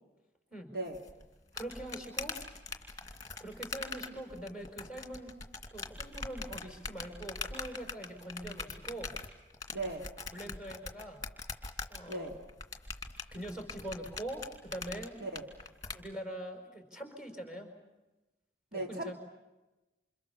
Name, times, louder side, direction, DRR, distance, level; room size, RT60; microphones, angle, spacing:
sound 1, 0.9-16.0, left 4 dB, 20° left, 2.5 m, -42 dB
voice 1, 1.6-2.4 3.4-5.3 5.7-9.1 10.3-11.2 11.9-12.4 13.3-15.2 15.9-17.7 18.7-19.2, right 1 dB, 5° right, 3 dB, 5.0 m, -43 dB
voice 2, 9.7-10.1 12.1-12.4 15.2-15.4 18.7-19.2, right 2 dB, 55° right, 2 dB, 2.7 m, -37 dB
28.5 x 27.5 x 7.1 m, 1.1 s
head